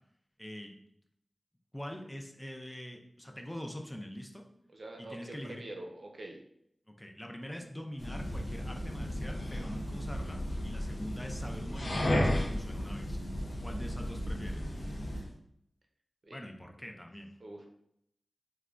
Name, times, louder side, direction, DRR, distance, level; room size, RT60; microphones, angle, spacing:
voice 1, 0.4-0.8 1.7-4.5 5.0-5.6 7.0-13.2 13.6-14.6 16.3-17.3, equal, 10° left, 2 dB, 0.4 m, -43 dB
voice 2, 4.7-6.4 16.2-16.4 17.4-17.7, right 2 dB, 60° right, 1 dB, 0.5 m, -45 dB
sound 1, 8.0-15.3, left 1 dB, 80° left, 0.5 m, -34 dB
3.2 x 2.2 x 2.4 m, 0.74 s
wide cardioid pair, 60°, 0 cm